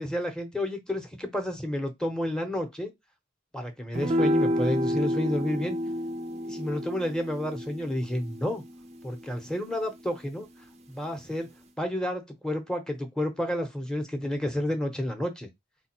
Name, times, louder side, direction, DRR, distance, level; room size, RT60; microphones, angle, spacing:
voice 1, 0.0-2.9 3.5-5.8 6.4-8.6 9.0-10.5 10.9-11.5 11.8-15.5, left 1 dB, 5° left, 0.9 m, -30 dB
sound 1, 3.9-10.5, equal, 35° right, 0.5 m, -31 dB
4.7 x 2.3 x 4.4 m
head